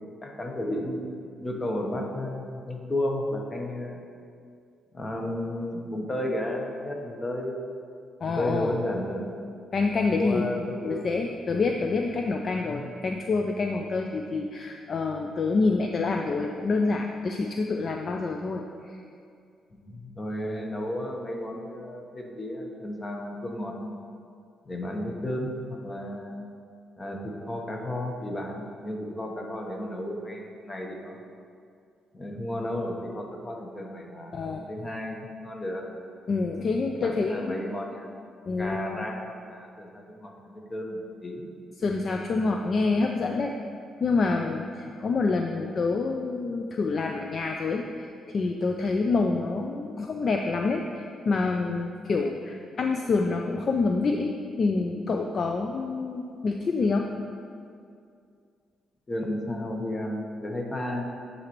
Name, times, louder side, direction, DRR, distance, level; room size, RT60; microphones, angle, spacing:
voice 1, 0.2-1.1 1.4-4.0 4.9-7.6 8.2-9.3 10.0-11.1 12.5-12.9 19.7-23.9 24.6-26.4 27.0-31.3 32.1-35.8 36.9-38.1 38.6-41.5 59.1-61.0, left 1 dB, 25° left, 1 dB, 0.9 m, -33 dB
voice 2, 8.2-8.7 9.7-10.4 10.8-19.0 34.3-34.6 36.3-37.6 38.5-39.1 41.8-43.5 44.0-54.3 54.6-57.1, left 3 dB, 45° left, 3 dB, 0.3 m, -27 dB
9.4 x 4.1 x 3.0 m, 2.4 s
cardioid pair, 90°, 0 cm